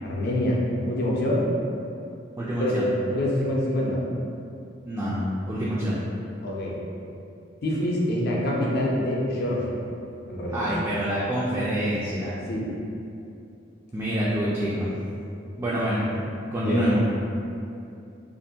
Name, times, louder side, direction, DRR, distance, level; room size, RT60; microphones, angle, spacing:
voice 1, 0.0-0.6 0.9-1.5 2.6-2.8 3.1-4.0 6.4-6.8 7.6-9.8 10.3-10.7 12.5-12.7 16.6-16.9, left 1 dB, 60° left, -3 dB, 0.5 m, -26 dB
voice 2, 2.4-2.9 4.9-6.0 10.5-12.4 13.9-14.9 15.6-16.0 16.5-17.0, equal, 15° right, -9 dB, 0.3 m, -26 dB
2.5 x 2.1 x 2.7 m, 2.6 s
head